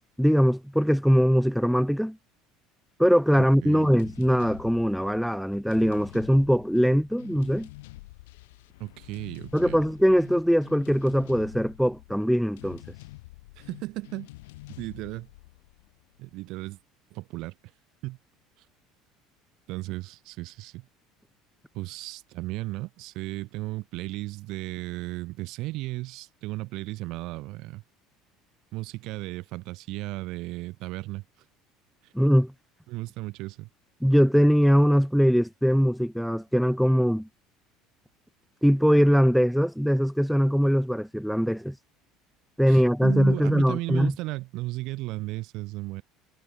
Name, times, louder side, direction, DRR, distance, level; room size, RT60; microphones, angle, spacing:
voice 1, 0.0-2.2 3.0-7.7 9.5-12.8 32.1-32.5 34.0-37.3 38.6-41.7 42.6-44.1, equal, ahead, 0.3 m, -21 dB
voice 2, 3.6-3.9 8.8-9.8 13.6-14.3 14.8-15.3 16.2-16.8 17.1-17.5 18.0-18.2 19.7-20.9 21.7-27.8 28.7-31.2 32.9-33.7 42.7-46.0, right 20 dB, 65° right, 1.4 m, -35 dB
sound 1, 3.8-16.5, left 20 dB, 85° left, 0.7 m, -47 dB
supercardioid pair, 90°, 0 cm